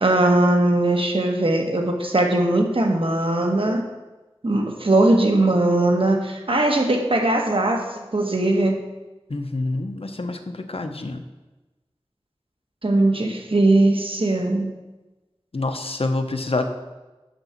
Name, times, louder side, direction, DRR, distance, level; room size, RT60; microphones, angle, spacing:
voice 1, 0.0-3.9 4.4-8.8 12.8-14.7, right 2 dB, 60° right, 2 dB, 1.3 m, -20 dB
voice 2, 9.3-11.2 15.5-16.6, left 2 dB, 70° left, 6 dB, 0.8 m, -27 dB
7.0 x 6.6 x 5.8 m, 1.1 s
wide cardioid pair, 50°, 10 cm